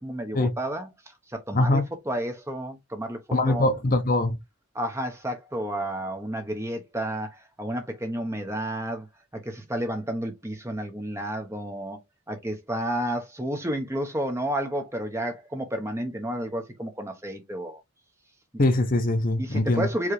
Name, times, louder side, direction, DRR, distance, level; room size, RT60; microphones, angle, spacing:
voice 1, 0.0-3.2 3.5-3.6 4.7-9.1 9.3-12.0 12.3-17.8 19.4-20.1, right 1 dB, 10° right, 0.9 m, -31 dB
voice 2, 1.5-1.8 3.3-4.4 18.6-19.9, left 2 dB, 40° left, 0.7 m, -22 dB
4.8 x 3.1 x 3.2 m
head